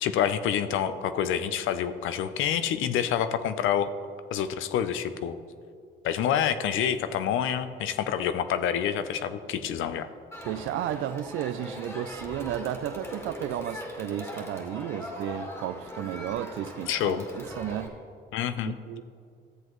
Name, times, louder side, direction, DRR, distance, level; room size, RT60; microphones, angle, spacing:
voice 1, 0.0-3.9 4.3-5.4 6.0-10.1 16.9-17.3 18.3-18.8, left 9 dB, 80° left, 11 dB, 0.6 m, -27 dB
Crowd, 10.3-17.9, left 1 dB, 15° left, 1.6 m, -40 dB
voice 2, 10.4-17.9 18.6-19.0, right 11 dB, 80° right, 13 dB, 0.4 m, -33 dB
13.5 x 7.8 x 3.1 m, 2.3 s
cardioid pair, 90°, 20 cm